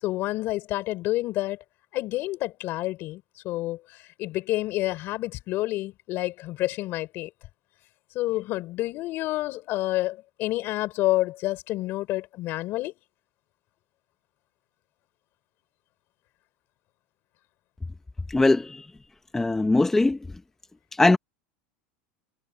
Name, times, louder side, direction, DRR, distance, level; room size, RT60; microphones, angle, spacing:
voice 1, 0.0-1.6 1.9-7.3 8.1-12.9, left 17 dB, 45° left, 6.0 m, -29 dB
voice 2, 18.3-18.9 19.3-20.2 20.9-21.2, left 2 dB, 10° left, 1.1 m, -20 dB
supercardioid pair, 135°, 5 cm